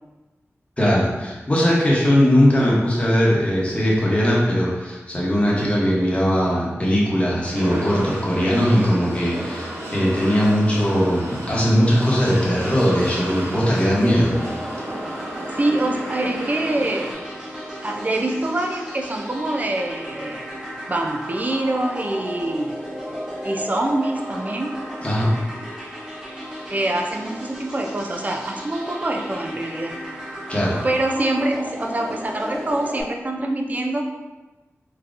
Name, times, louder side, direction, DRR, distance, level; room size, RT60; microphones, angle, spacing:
voice 1, 0.8-14.6 25.0-25.3 30.5-30.8, equal, 25° left, -6 dB, 0.9 m, -19 dB
sound 1, 7.5-17.1, right 1 dB, 85° right, 0.8 m, -32 dB
sound 2, 14.3-33.0, equal, 10° right, 0.9 m, -34 dB
voice 2, 15.5-17.1 17.8-20.4 20.9-22.8 23.4-24.8 26.7-29.9 30.8-34.0, right 1 dB, 35° right, 2 dB, 0.4 m, -25 dB
3.7 x 2.8 x 2.4 m, 1.2 s
wide cardioid pair, 80°, 5 cm